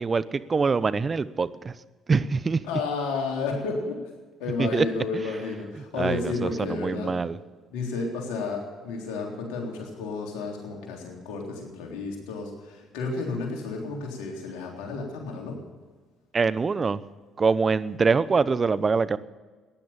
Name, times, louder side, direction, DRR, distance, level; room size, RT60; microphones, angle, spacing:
voice 1, 0.0-1.7 2.1-2.6 4.6-4.9 6.0-7.4 16.3-17.0 17.4-19.2, right 4 dB, 35° right, 16 dB, 0.8 m, -24 dB
voice 2, 2.6-4.0 4.4-7.1 7.7-15.6, left 4 dB, 80° left, 0 dB, 3.6 m, -32 dB
15.5 x 10.5 x 7.4 m, 1.4 s
hypercardioid pair, 60°, 0 cm